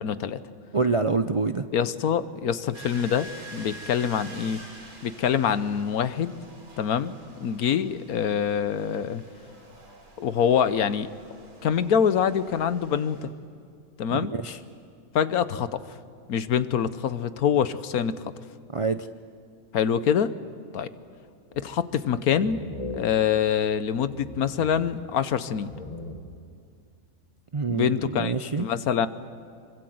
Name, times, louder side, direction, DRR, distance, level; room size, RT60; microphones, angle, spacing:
voice 1, 0.0-0.4 1.7-4.6 5.0-6.3 6.8-7.1 7.4-9.2 10.2-11.1 11.6-13.3 14.0-14.3 15.1-15.8 16.3-18.2 19.7-20.3 20.7-20.9 21.6-22.6 22.9-25.7 27.7-28.3 28.6-29.1, left 8 dB, 80° left, 13 dB, 1.4 m, -25 dB
voice 2, 0.7-1.7 14.3-14.6 18.7-19.1 27.5-28.7, right 4 dB, 50° right, 9 dB, 0.3 m, -26 dB
sound 1, 2.7-13.3, right 1 dB, 90° right, 4.1 m, -47 dB
sound 2, 21.5-22.0 22.3-23.8 24.0-25.4 25.7-26.7, left 2 dB, 25° left, 1.2 m, -40 dB
26.0 x 24.5 x 7.9 m, 2.3 s
omnidirectional pair, 1.5 m